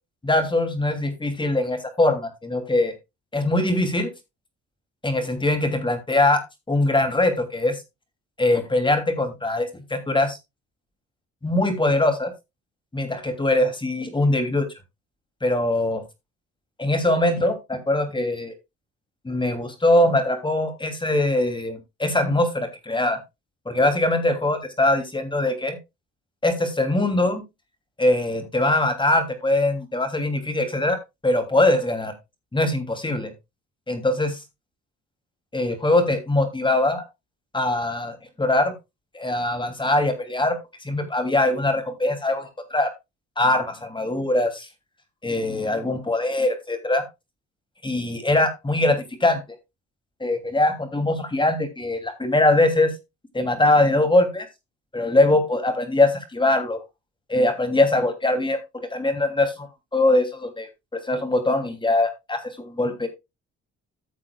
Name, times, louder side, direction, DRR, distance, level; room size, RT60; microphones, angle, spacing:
voice 1, 0.2-2.9 3.3-4.1 5.0-6.4 6.7-7.8 8.4-10.4 11.4-12.3 12.9-14.7 15.4-16.0 16.8-18.5 19.2-23.2 23.7-25.8 26.4-27.4 28.0-31.0 31.2-32.1 32.5-33.3 33.9-34.4 35.5-37.0 37.5-38.7 39.1-40.6 40.8-42.9 43.4-44.7 45.2-47.0 47.8-49.6 50.2-52.9 53.3-54.5 54.9-56.8 57.3-63.1, left 2 dB, 15° left, 8 dB, 2.9 m, -22 dB
14.5 x 7.5 x 2.3 m, 0.23 s
cardioid pair, 100°, 29 cm